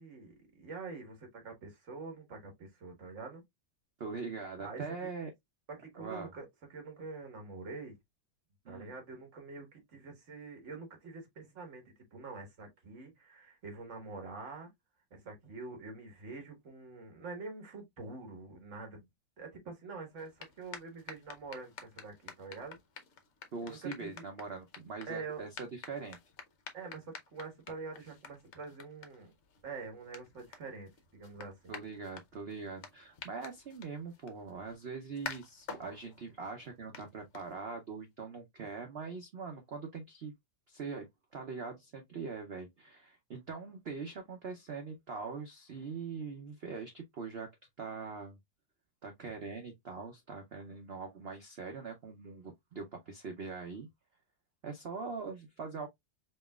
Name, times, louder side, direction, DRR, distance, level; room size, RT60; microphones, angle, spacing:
voice 1, 0.0-3.4 4.6-4.8 5.7-6.4 6.7-7.9 8.7-11.8 12.1-14.7 15.1-19.0 19.4-22.8 23.7-24.3 25.1-25.4 26.7-29.3 29.6-31.8, right 4 dB, 45° right, 1.6 m, -45 dB
voice 2, 4.0-5.3 5.9-6.3 8.6-8.9 23.5-26.2 31.7-40.3 40.7-47.5 47.8-48.4 49.0-53.9 54.6-55.9, right 4 dB, 80° right, 0.5 m, -42 dB
sound 1, 20.1-37.9, left 6 dB, 60° left, 0.8 m, -51 dB
5.3 x 2.8 x 2.3 m
omnidirectional pair, 2.0 m